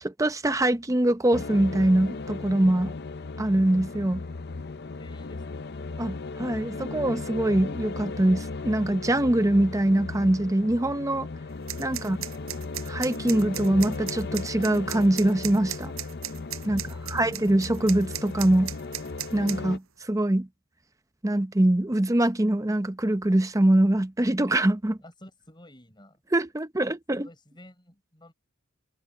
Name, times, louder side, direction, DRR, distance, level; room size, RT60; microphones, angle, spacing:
voice 1, 0.0-2.9 3.4-4.2 6.0-11.3 11.8-12.2 12.9-15.9 16.7-16.8 17.1-18.7 19.3-20.5 21.2-25.0 26.3-27.3, right 1 dB, 15° right, 0.7 m, -23 dB
sound 1, 1.3-19.8, left 3 dB, 50° left, 0.6 m, -36 dB
voice 2, 5.0-5.7 16.6-17.3 25.0-26.2 27.2-28.3, left 1 dB, 20° left, 5.9 m, -51 dB
sound 2, 11.7-19.6, right 13 dB, 75° right, 6.1 m, -37 dB
head